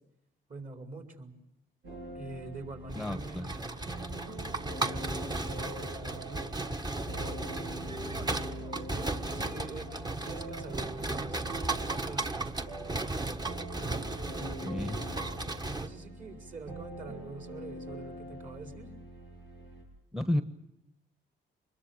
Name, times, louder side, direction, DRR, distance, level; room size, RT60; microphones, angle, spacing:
voice 1, 0.5-1.4 2.1-3.8 4.8-6.5 7.2-7.5 8.1-11.4 12.0-12.7 14.4-15.3 15.7-18.9, right 3 dB, 40° right, 4 dB, 4.7 m, -45 dB
sound 1, 1.8-19.8, right 1 dB, 85° right, 7.6 m, -44 dB
voice 2, 2.9-3.7 14.6-15.0 20.1-20.4, left 1 dB, ahead, 9 dB, 1.2 m, -32 dB
sound 2, 2.9-15.9, right 2 dB, 20° right, 1.3 m, -36 dB
25.0 x 21.5 x 8.9 m, 0.82 s
cardioid pair, 90°, 20 cm